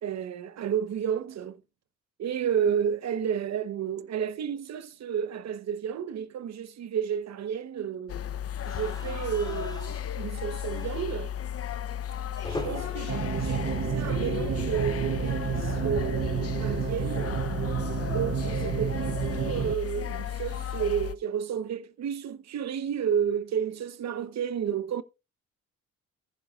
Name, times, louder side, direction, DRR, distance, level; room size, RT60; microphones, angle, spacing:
voice 1, 0.0-1.6 2.2-8.2 8.6-11.3 12.5-17.4 18.0-25.0, right 8 dB, 60° right, 1.0 m, -31 dB
sound 1, 8.1-21.1, left 10 dB, 50° left, 0.8 m, -34 dB
sound 2, 8.6-14.6 14.9-15.1 15.4-15.5 16.7-19.1, left 1 dB, 15° left, 3.5 m, -44 dB
sound 3, 13.1-19.8, right 9 dB, 40° right, 0.6 m, -30 dB
15.0 x 10.5 x 2.5 m
cardioid pair, 90°, 30 cm